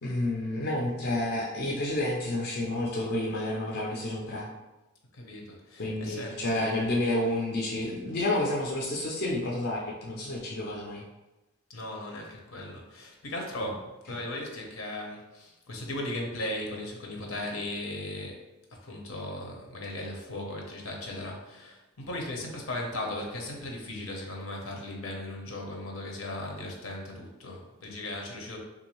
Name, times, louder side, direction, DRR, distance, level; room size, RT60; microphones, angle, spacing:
voice 1, 0.0-4.5 5.8-11.0 13.6-13.8 14.1-14.2, left 1 dB, 50° left, -3 dB, 0.5 m, -30 dB
voice 2, 5.1-6.9 11.7-18.4 18.8-28.6, left 1 dB, 85° left, 0 dB, 0.8 m, -37 dB
3.6 x 2.6 x 3.0 m, 1.0 s
head